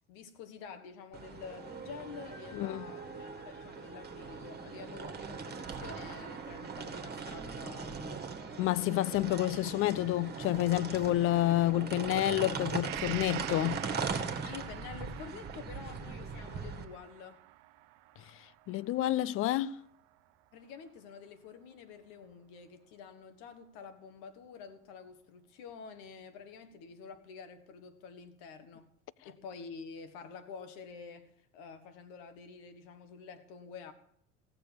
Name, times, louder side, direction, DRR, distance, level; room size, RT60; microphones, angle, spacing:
voice 1, 0.1-8.3 14.4-17.4 20.5-28.9 29.2-33.9, left 5 dB, 60° left, 1.7 m, -48 dB
sound 1, 1.1-16.8, right 5 dB, 30° right, 1.9 m, -40 dB
voice 2, 2.5-2.8 8.6-13.8 18.7-19.8, left 15 dB, 40° left, 0.5 m, -29 dB
Gong, 12.8-20.5 20.9-21.0, right 18 dB, 55° right, 0.7 m, -47 dB
17.0 x 6.9 x 7.2 m
figure-of-eight pair, 65°, 35 cm